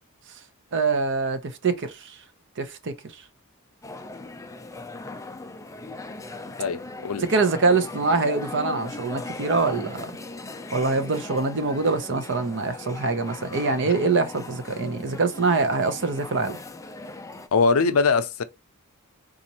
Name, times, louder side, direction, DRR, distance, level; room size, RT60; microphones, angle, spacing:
voice 1, 0.7-2.1 2.6-2.9 7.2-10.1 10.7-16.5, right 3 dB, 55° right, 0.7 m, -24 dB
sound 1, 3.8-17.5, left 2 dB, 15° left, 0.4 m, -39 dB
voice 2, 6.6-7.3 17.5-18.4, left 4 dB, 70° left, 0.5 m, -22 dB
4.0 x 2.5 x 2.8 m
head